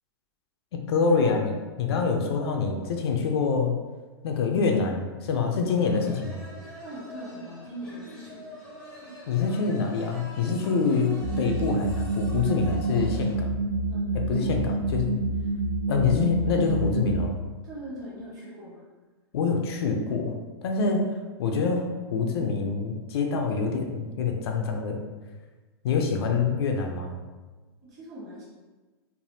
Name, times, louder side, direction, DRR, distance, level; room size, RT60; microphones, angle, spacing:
voice 1, 0.9-3.8 4.2-6.5 9.3-13.5 14.1-15.2 15.9-17.3 19.3-21.1 21.4-25.0 25.8-27.2, left 5 dB, 70° left, 3 dB, 0.4 m, -26 dB
sound 1, 5.5-13.4, equal, 5° left, 0.6 m, -45 dB
voice 2, 6.8-8.5 13.9-14.8 17.6-18.8 27.8-28.4, right 1 dB, 25° right, -8 dB, 1.1 m, -41 dB
sound 2, 11.2-17.3, right 2 dB, 70° right, 0.5 m, -28 dB
3.3 x 2.1 x 2.7 m, 1.3 s
hypercardioid pair, 150°, 14 cm